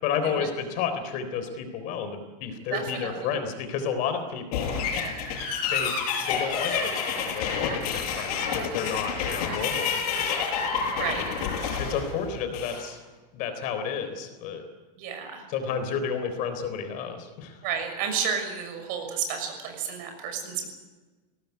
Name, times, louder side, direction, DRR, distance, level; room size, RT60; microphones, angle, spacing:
voice 1, 0.0-4.7 5.7-5.9 6.3-10.9 11.4-11.5 11.8-13.0 13.3-14.6 15.5-17.6, left 6 dB, 40° left, 8 dB, 3.8 m, -31 dB
voice 2, 2.7-3.4 10.9-11.3 15.0-15.4 17.6-20.7, right 7 dB, 45° right, 5 dB, 6.3 m, -31 dB
sound 1, 4.5-12.9, left 6 dB, 60° left, 7.3 m, -29 dB
22.0 x 18.5 x 9.5 m, 1.3 s
supercardioid pair, 160°, 21 cm